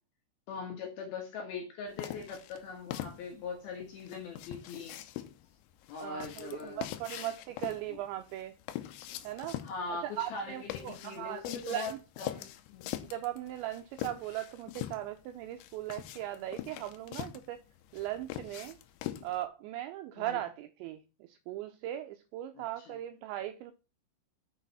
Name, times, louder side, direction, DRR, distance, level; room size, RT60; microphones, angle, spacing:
voice 1, 0.5-5.0 5.9-6.8 7.2-7.3 7.9-8.0 9.6-12.9 20.2-20.4 22.6-23.0, left 4 dB, 65° left, 2 dB, 2.6 m, -41 dB
sound 1, 2.0-19.4, left 13 dB, 80° left, 2.6 m, -43 dB
voice 2, 6.0-8.5 9.2-9.6 10.2-12.0 13.1-17.6 17.9-18.8 19.2-21.0 21.3-23.7, right 13 dB, 85° right, 7 dB, 2.6 m, -38 dB
6.7 x 6.2 x 4.1 m, 0.31 s
omnidirectional pair, 5.7 m